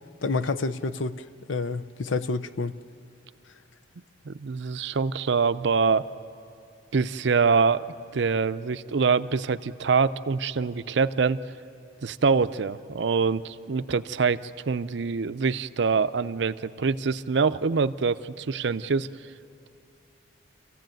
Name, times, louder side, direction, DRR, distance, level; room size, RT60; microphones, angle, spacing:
voice 1, 0.2-2.7, left 3 dB, 80° left, 0.7 m, -29 dB
voice 2, 4.2-6.1 6.9-7.9 8.1-11.4 12.0-19.1, right 5 dB, 65° right, 0.5 m, -25 dB
27.0 x 15.5 x 9.1 m
head